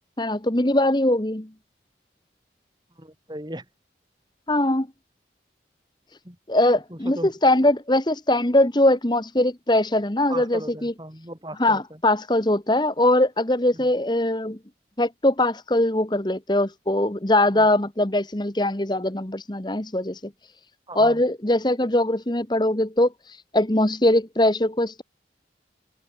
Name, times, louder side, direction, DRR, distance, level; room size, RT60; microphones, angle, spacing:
voice 1, 0.2-1.5 4.5-4.9 6.5-10.9 11.6-14.6 15.0-20.2 20.9-25.0, left 1 dB, 25° left, 1.4 m, -21 dB
voice 2, 3.0-3.6 6.2-6.4 6.9-7.3 10.3-11.8 13.7-13.9 17.5-17.7 20.9-21.2, right 1 dB, 25° right, 5.8 m, -37 dB
head